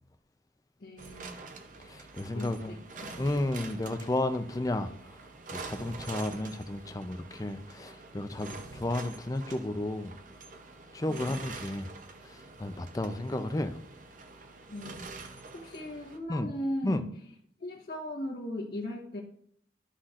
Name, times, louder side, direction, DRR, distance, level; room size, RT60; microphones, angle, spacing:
voice 1, 0.8-1.5 2.2-3.4 11.1-11.4 14.7-17.2 17.6-19.2, left 1 dB, 55° left, -6 dB, 1.3 m, -38 dB
sound 1, 1.0-16.2, right 3 dB, 45° right, 0.7 m, -46 dB
voice 2, 1.9-2.8 3.2-4.9 5.5-10.1 10.9-11.9 12.2-13.8 16.3-16.5 16.8-17.0, left 1 dB, 20° left, 9 dB, 0.5 m, -32 dB
11.5 x 5.7 x 2.5 m, 0.65 s
head